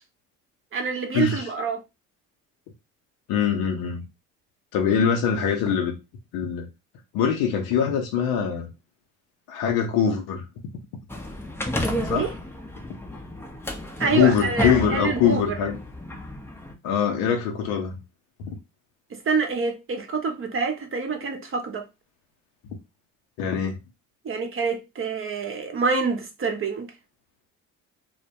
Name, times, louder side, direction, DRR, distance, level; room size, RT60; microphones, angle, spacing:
voice 1, 0.7-1.8 12.2-12.3 14.0-15.5 19.1-21.8 24.2-26.9, right 4 dB, 35° right, 0.7 m, -26 dB
voice 2, 3.3-4.0 4.7-5.9 6.3-6.7 7.1-8.7 9.5-10.5 12.0-12.3 14.1-15.8 16.8-18.0 23.4-23.8, left 7 dB, 75° left, 0.7 m, -23 dB
sound 1, 11.1-16.7, left 1 dB, 5° left, 0.5 m, -32 dB
2.2 x 2.1 x 2.8 m
hypercardioid pair, 60°, 39 cm